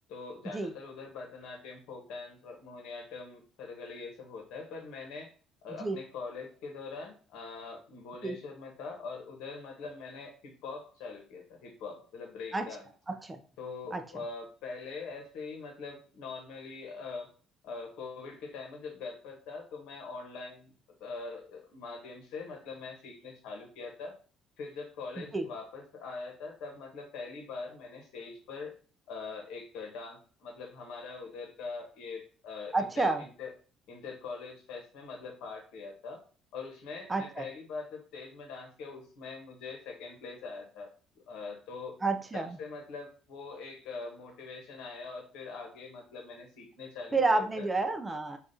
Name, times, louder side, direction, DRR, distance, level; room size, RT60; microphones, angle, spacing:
voice 1, 0.1-5.3 5.6-12.9 13.6-17.3 17.6-20.7 21.0-24.2 24.6-28.8 29.1-33.5 33.9-36.2 36.5-40.9 41.3-42.0 42.3-47.7, left 4 dB, 85° left, 2 dB, 0.9 m, -43 dB
voice 2, 13.1-13.4 13.9-14.0 25.2-25.5 32.7-33.2 37.1-37.4 42.0-42.6 47.1-48.4, right 3 dB, 10° right, 6 dB, 0.3 m, -30 dB
5.0 x 2.3 x 2.7 m, 0.40 s
cardioid pair, 165°, 0 cm